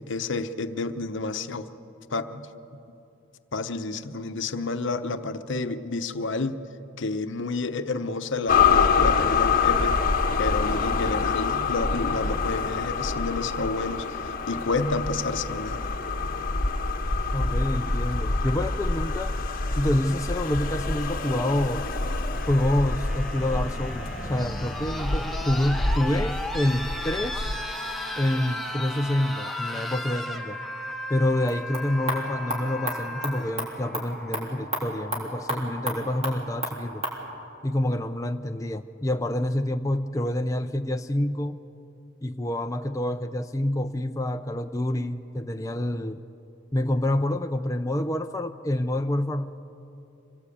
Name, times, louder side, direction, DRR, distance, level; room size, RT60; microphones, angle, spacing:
voice 1, 0.0-1.7 2.1-2.4 3.5-6.6 7.0-10.0 10.4-14.2 14.5-15.9, left 3 dB, 60° left, 9 dB, 0.9 m, -30 dB
sound 1, 8.5-27.6, left 4 dB, 45° left, 1.2 m, -26 dB
voice 2, 17.3-19.3 19.7-21.8 22.5-27.6 28.2-30.6 31.1-37.0 37.6-41.6 42.2-46.2 46.7-49.6, left 1 dB, 15° left, 5 dB, 0.5 m, -27 dB
sound 2, 20.6-34.6 35.8-35.9, left 1 dB, ahead, 1.2 m, -36 dB
sound 3, 31.4-37.2, right 1 dB, 30° right, 3.8 m, -34 dB
25.5 x 18.5 x 8.5 m, 2.9 s
head